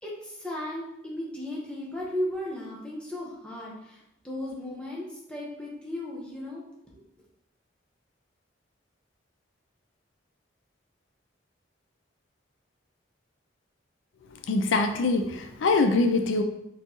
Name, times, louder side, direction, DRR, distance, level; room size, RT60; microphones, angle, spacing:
voice 1, 0.0-6.6 6.9-7.0, left 1 dB, 5° left, -5 dB, 1.0 m, -35 dB
voice 2, 14.5-16.4, left 3 dB, 80° left, 6 dB, 0.4 m, -23 dB
4.4 x 4.0 x 2.9 m, 0.81 s
head